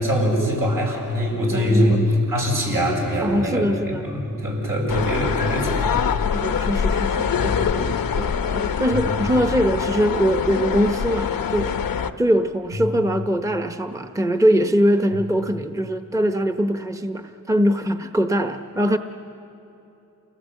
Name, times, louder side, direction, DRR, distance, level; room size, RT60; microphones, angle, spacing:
voice 1, 0.0-2.0 2.3-5.8 7.3-7.6 9.1-9.2, equal, 80° right, -2 dB, 7.1 m, -23 dB
voice 2, 1.5-2.1 3.2-4.0 6.3-11.8 12.2-19.0, equal, 10° right, 7 dB, 0.9 m, -22 dB
sound 1, 4.9-12.1, left 7 dB, 85° left, 0.8 m, -24 dB
28.5 x 18.0 x 8.3 m, 2.9 s
wide cardioid pair, 90°, 33 cm